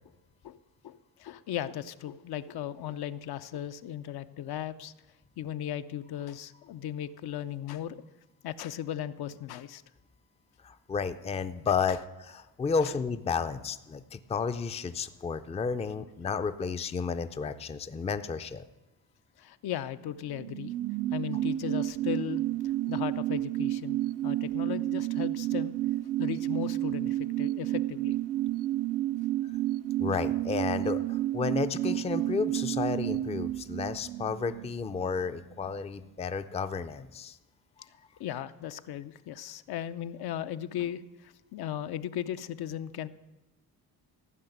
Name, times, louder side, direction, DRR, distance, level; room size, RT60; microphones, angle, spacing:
voice 1, 0.8-4.9 5.4-8.0 8.4-9.8 11.9-12.0 12.8-12.9 19.4-20.7 21.1-22.4 22.9-25.7 26.2-28.2 38.2-43.1, left 10 dB, 75° left, 11 dB, 0.7 m, -37 dB
voice 2, 10.6-18.6 30.0-37.4, left 5 dB, 15° left, 11 dB, 0.4 m, -32 dB
sound 1, 20.2-35.3 35.6-35.7, right 14 dB, 40° right, 0.4 m, -31 dB
14.5 x 5.9 x 9.3 m, 1.1 s
cardioid pair, 155°, 38 cm